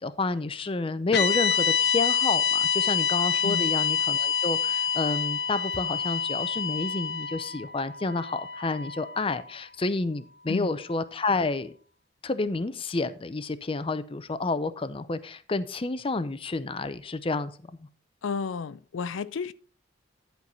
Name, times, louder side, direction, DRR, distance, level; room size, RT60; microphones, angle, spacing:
voice 1, 0.0-11.7 12.2-17.5, left 3 dB, 30° left, 0.5 m, -30 dB
sound 1, 1.1-9.4, left 7 dB, 55° left, 0.9 m, -27 dB
voice 2, 18.2-19.5, left 5 dB, 85° left, 0.4 m, -32 dB
10.5 x 4.6 x 5.5 m
head